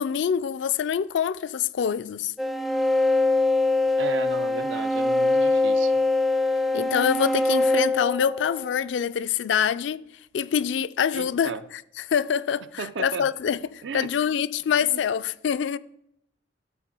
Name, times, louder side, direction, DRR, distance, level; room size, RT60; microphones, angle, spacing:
voice 1, 0.0-2.3 6.7-10.0 10.3-11.5 12.1-15.8, left 8 dB, 70° left, 0.3 m, -25 dB
sound 1, 2.4-8.9, left 2 dB, ahead, 0.3 m, -23 dB
voice 2, 4.0-6.0 11.1-11.6 12.8-13.3 13.8-14.1 14.8-15.0, right 5 dB, 70° right, 0.5 m, -35 dB
12.0 x 4.1 x 5.3 m
head